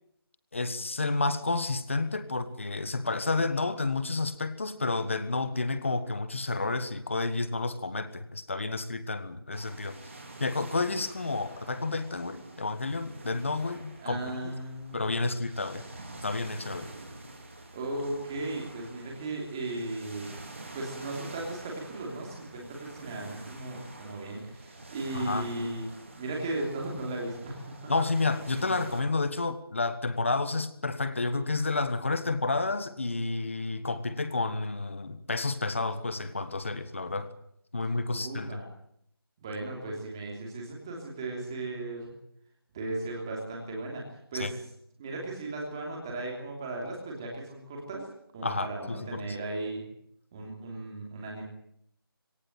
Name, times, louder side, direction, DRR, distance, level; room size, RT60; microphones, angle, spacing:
voice 1, 0.5-10.0 10.4-14.2 14.9-15.8 16.2-16.9 25.1-25.5 27.9-37.3 37.7-38.6 44.3-44.5 48.4-49.2, left 3 dB, 30° left, 12 dB, 1.6 m, -30 dB
sound 1, 9.5-29.0, right 2 dB, 35° right, 3.9 m, -47 dB
voice 2, 14.0-15.1 17.7-20.3 20.7-25.9 26.1-27.9 38.1-38.6 39.4-42.1 42.7-44.0 44.3-44.6 45.0-48.0 48.3-49.8 50.3-51.5, right 2 dB, 10° right, -1 dB, 3.0 m, -36 dB
20.0 x 18.5 x 9.0 m, 0.72 s
figure-of-eight pair, 180°, 13 cm